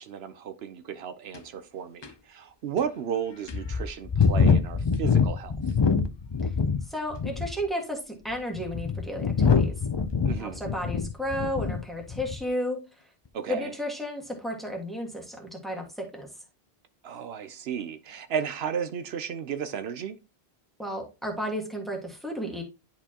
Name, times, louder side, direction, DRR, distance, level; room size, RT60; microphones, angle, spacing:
voice 1, 0.0-5.5 10.2-10.6 13.3-13.7 17.0-20.2, right 8 dB, 80° right, 0.9 m, -34 dB
sound 1, 1.3-1.4 2.0-2.1 2.8-2.9 3.5-6.8 7.1-7.6 8.3-11.8 12.1-12.4, left 5 dB, 35° left, 0.4 m, -24 dB
voice 2, 6.8-9.7 10.3-12.8 13.5-16.3 20.8-22.6, equal, ahead, 1.6 m, -33 dB
10.0 x 4.4 x 2.9 m
omnidirectional pair, 1.0 m